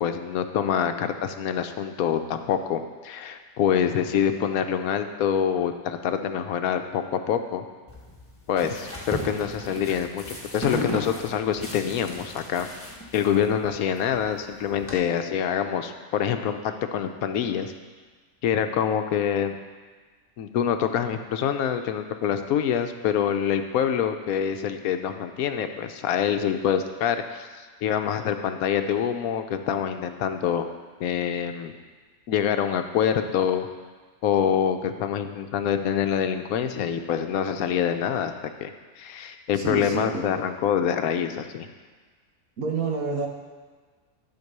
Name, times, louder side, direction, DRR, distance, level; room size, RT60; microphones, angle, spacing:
voice 1, 0.0-7.6 8.5-10.2 10.5-12.7 13.1-17.7 18.4-19.5 20.4-30.7 31.0-31.7 32.3-33.7 34.2-38.3 38.6-41.7, left 8 dB, 75° left, 7 dB, 1.1 m, -26 dB
sound 1, 7.9-14.9, equal, 10° left, 1.3 m, -36 dB
voice 2, 39.6-40.2 42.6-43.3, right 4 dB, 70° right, 2 dB, 1.6 m, -28 dB
12.5 x 4.5 x 6.6 m, 1.4 s
omnidirectional pair, 1.6 m